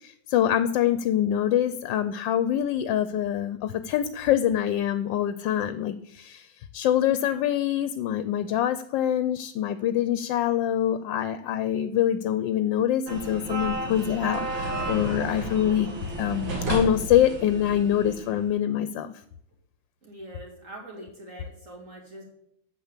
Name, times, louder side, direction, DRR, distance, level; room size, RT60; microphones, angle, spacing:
voice 1, 0.0-6.5 6.7-15.9 16.2-19.1, left 10 dB, 80° left, 12 dB, 1.3 m, -25 dB
sound 1, 13.1-18.5, right 1 dB, 85° right, 2.7 m, -32 dB
voice 2, 20.0-22.2, right 1 dB, 40° right, 0 dB, 3.2 m, -43 dB
8.5 x 7.0 x 7.4 m, 0.73 s
omnidirectional pair, 2.0 m